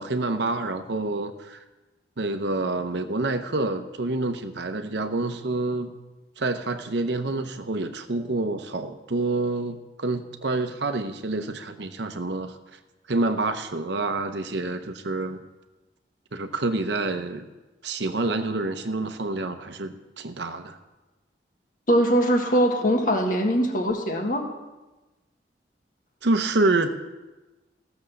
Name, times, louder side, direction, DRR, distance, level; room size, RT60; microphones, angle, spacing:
voice 1, 0.0-1.6 2.2-6.0 6.4-12.5 13.1-15.4 16.3-17.5 17.8-20.8 26.2-26.9, right 2 dB, 70° right, 8 dB, 0.9 m, -27 dB
voice 2, 21.9-24.4, equal, 45° left, 2 dB, 1.7 m, -22 dB
15.0 x 7.0 x 6.6 m, 1.1 s
head